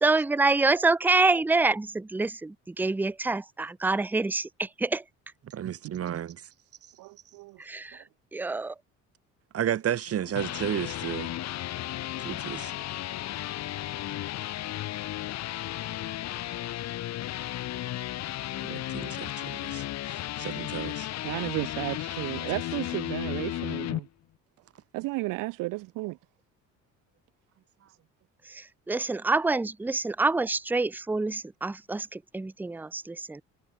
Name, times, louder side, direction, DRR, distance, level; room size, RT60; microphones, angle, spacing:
voice 1, 0.0-5.0 7.6-8.0 8.3-8.7 28.4-33.4, right 3 dB, 5° right, 0.6 m, -27 dB
voice 2, 5.5-6.5 9.5-11.3 12.2-12.7 18.6-21.1, right 10 dB, 45° right, 4.5 m, -33 dB
voice 3, 6.9-7.6 21.2-24.1 24.9-26.2, right 21 dB, 80° right, 1.4 m, -33 dB
sound 1, 10.1-24.0, left 14 dB, 55° left, 1.4 m, -34 dB
cardioid pair, 120°, 32 cm